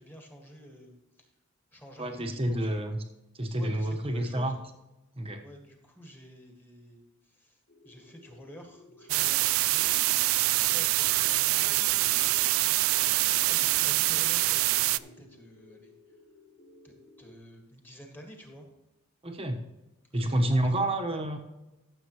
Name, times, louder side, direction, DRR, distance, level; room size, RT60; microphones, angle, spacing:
voice 1, 0.0-1.3 1.7-2.7 3.5-4.5 5.4-10.2 10.6-12.2 13.3-16.2 16.8-18.7 20.1-20.8, equal, 10° left, 2 dB, 1.8 m, -50 dB
voice 2, 2.0-3.0 3.3-4.6 5.2-5.4 19.2-19.6 20.1-21.4, right 1 dB, 25° right, 4 dB, 1.2 m, -29 dB
sound 1, 7.7-17.4, left 1 dB, 55° left, 3.3 m, -56 dB
sound 2, 9.1-15.0, right 18 dB, 65° right, 0.3 m, -25 dB
14.0 x 7.6 x 3.1 m, 1.0 s
head